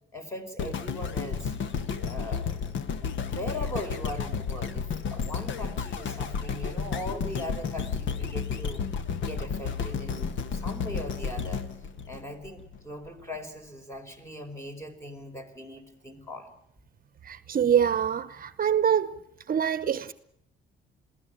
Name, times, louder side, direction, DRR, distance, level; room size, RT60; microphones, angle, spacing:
voice 1, 0.1-1.5 2.0-2.6 3.3-8.8 9.2-11.7 12.1-16.5, left 1 dB, 15° left, 4.8 m, -39 dB
sound 1, 0.6-12.8 13.3-13.4, left 6 dB, 70° left, 1.6 m, -32 dB
voice 2, 17.2-19.2 19.5-20.1, right 8 dB, 45° right, 0.9 m, -25 dB
22.0 x 16.0 x 9.0 m
cardioid pair, 90°, 20 cm